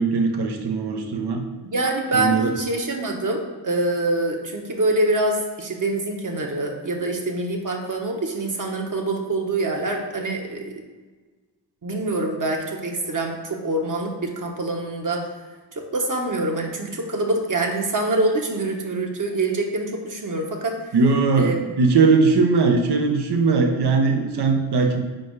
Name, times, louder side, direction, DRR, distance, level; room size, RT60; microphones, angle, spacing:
voice 1, 0.0-1.4 2.1-2.5 20.9-25.0, right 4 dB, 70° right, 4 dB, 1.0 m, -19 dB
voice 2, 1.6-10.7 11.8-15.3 15.7-20.8 21.4-21.6, right 2 dB, 50° right, 1 dB, 1.3 m, -25 dB
5.2 x 4.8 x 4.7 m, 1.3 s
cardioid pair, 60°, 41 cm